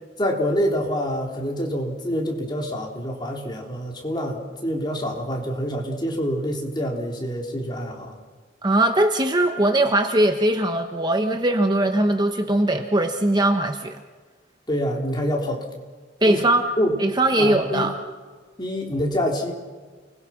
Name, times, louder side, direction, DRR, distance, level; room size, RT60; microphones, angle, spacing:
voice 1, 0.2-8.2 14.7-15.6 16.2-16.4 16.8-16.9 17.4-17.9 18.6-19.5, equal, 25° left, 0 dB, 3.9 m, -26 dB
voice 2, 8.6-14.0 16.2-16.7 17.0-17.9, right 1 dB, 20° right, 5 dB, 1.1 m, -20 dB
30.0 x 21.5 x 5.9 m, 1.5 s
head